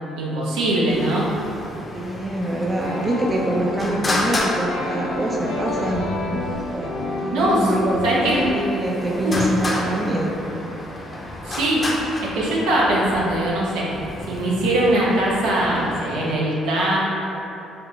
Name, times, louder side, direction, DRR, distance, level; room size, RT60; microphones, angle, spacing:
voice 1, 0.2-1.3 7.3-8.5 9.2-9.4 11.4-11.8 12.3-13.8 14.3-17.0, right 1 dB, 80° right, -6 dB, 0.7 m, -21 dB
Traffic noise roadway noise, 0.9-16.4, left 1 dB, 35° left, 0.6 m, -32 dB
voice 2, 1.9-6.1 6.7-8.1 8.3-10.4, right 1 dB, 30° right, -1 dB, 0.4 m, -25 dB
sound 1, 2.8-8.6, left 2 dB, 80° left, 0.7 m, -29 dB
4.8 x 2.1 x 2.9 m, 3.0 s
hypercardioid pair, 55°, 0 cm